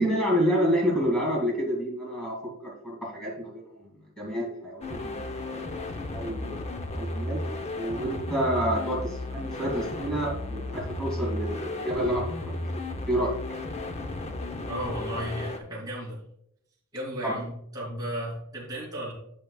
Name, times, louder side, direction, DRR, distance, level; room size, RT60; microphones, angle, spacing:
voice 1, 0.0-5.2 5.5-5.7 6.1-7.4 7.7-12.7 13.1-13.3 17.2-17.3, equal, 5° left, -4 dB, 2.2 m, -29 dB
sound 1, 4.8-15.6, left 2 dB, 30° left, 0.7 m, -34 dB
voice 2, 14.7-16.2 16.9-19.1, equal, 20° right, -6 dB, 2.9 m, -34 dB
10.5 x 6.8 x 2.3 m, 0.74 s
head